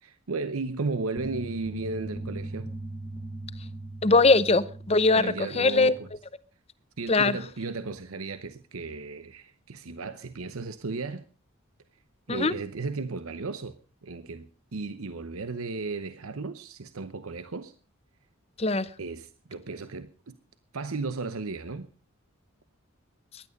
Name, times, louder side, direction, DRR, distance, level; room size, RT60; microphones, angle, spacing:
voice 1, 0.0-2.7 5.1-6.1 7.0-11.3 12.3-13.8 14.0-17.7 19.0-20.3 20.7-21.9, right 3 dB, 80° right, 0.8 m, -35 dB
sound 1, 1.2-6.2, right 2 dB, 5° left, 1.4 m, -39 dB
voice 2, 4.0-5.9 7.1-7.4 12.3-12.5 18.6-18.9, left 3 dB, 30° left, 0.7 m, -21 dB
16.0 x 11.0 x 5.3 m
head